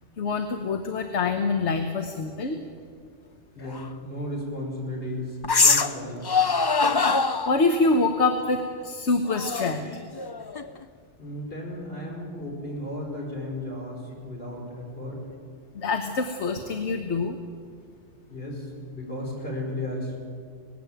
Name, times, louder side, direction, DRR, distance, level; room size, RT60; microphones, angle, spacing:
voice 1, 0.2-2.6 7.5-10.0 15.7-17.4, left 3 dB, 70° left, 6 dB, 1.4 m, -25 dB
voice 2, 3.5-6.3 11.2-15.3 18.3-20.2, left 1 dB, 55° left, -2 dB, 5.7 m, -34 dB
sound 1, 3.7-3.8 5.4-6.0 6.2-7.6 9.3-10.8, left 4 dB, 30° left, 0.4 m, -23 dB
19.5 x 16.0 x 9.0 m, 2.2 s
omnidirectional pair, 1.2 m